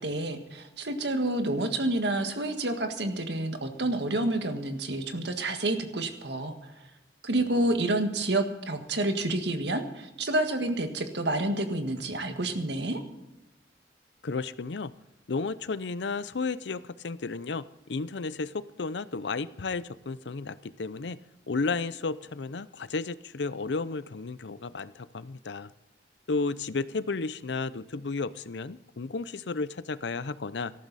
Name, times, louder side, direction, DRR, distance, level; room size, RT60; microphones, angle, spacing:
voice 1, 0.0-6.6 7.2-13.0, right 2 dB, 70° right, 6 dB, 1.7 m, -29 dB
voice 2, 14.2-14.9 15.3-21.2 21.5-25.7 26.3-30.7, left 4 dB, 80° left, 16 dB, 0.6 m, -33 dB
18.5 x 14.0 x 4.1 m, 0.97 s
head